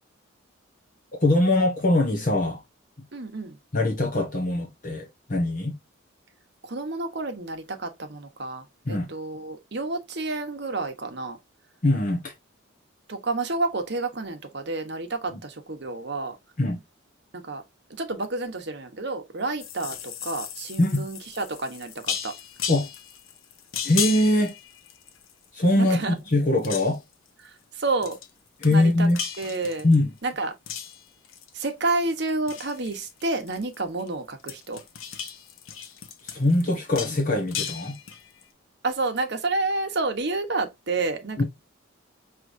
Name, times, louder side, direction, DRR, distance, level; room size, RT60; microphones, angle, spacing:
voice 1, 1.2-2.6 3.7-5.8 8.9-9.1 11.8-12.3 15.3-15.4 16.6-16.8 20.8-21.1 22.7-22.9 23.8-24.5 25.5-27.0 28.6-29.2 29.8-30.1 36.2-38.0 41.4-41.5, left 1 dB, 40° left, 0.9 m, -22 dB
voice 2, 3.1-3.6 6.6-11.4 13.1-16.4 17.3-17.6 18.0-22.3 25.8-26.2 27.4-28.2 28.7-29.1 29.4-29.9 30.2-30.5 31.5-34.8 38.8-41.4, right 3 dB, 50° right, 1.0 m, -30 dB
sound 1, 19.6-25.5 25.8-26.3 26.6-27.1 28.0-28.3 28.6-30.2 30.7-31.7 32.1-34.1 34.4-38.4, left 8 dB, 70° left, 0.9 m, -35 dB
6.0 x 3.1 x 2.6 m
head